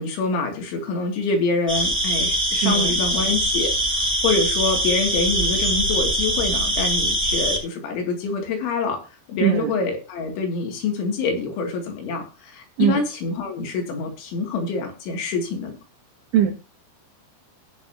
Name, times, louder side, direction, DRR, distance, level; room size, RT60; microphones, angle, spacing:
voice 1, 0.0-9.0 9.3-15.8, left 4 dB, 80° left, 2 dB, 4.9 m, -26 dB
sound 1, 1.7-7.6, right 1 dB, 5° right, 2.2 m, -22 dB
voice 2, 2.6-2.9 9.4-9.7 12.8-13.0 16.3-16.5, right 10 dB, 85° right, 1 dB, 4.6 m, -20 dB
19.5 x 7.0 x 2.9 m, 0.30 s
omnidirectional pair, 5.3 m